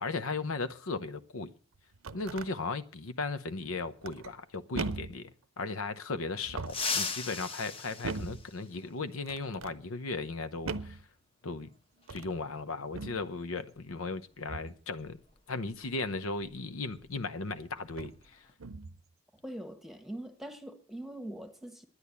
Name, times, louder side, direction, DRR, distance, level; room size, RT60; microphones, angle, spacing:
voice 1, 0.0-1.5 2.1-5.3 5.6-11.0 11.4-11.7 12.1-15.2 15.5-18.5, left 3 dB, 85° left, 0.8 m, -36 dB
sound 1, 1.7-2.5 4.0-4.4 4.7-5.2 6.4-7.0 8.0-8.5 9.3-9.8 10.7-11.0 12.0-12.4 12.9-13.3 14.5-14.8 16.9-17.0 17.9-18.2 18.6-19.0, right 4 dB, 90° right, 0.7 m, -39 dB
sound 2, 6.6-9.1 10.7-10.8 12.0-12.1 13.8-13.9 14.3-14.5 15.0-17.1 17.4-17.7 18.1-18.5, left 4 dB, 25° left, 0.9 m, -38 dB
voice 2, 19.3-21.9, right 1 dB, ahead, 1.2 m, -43 dB
10.5 x 9.8 x 8.3 m
head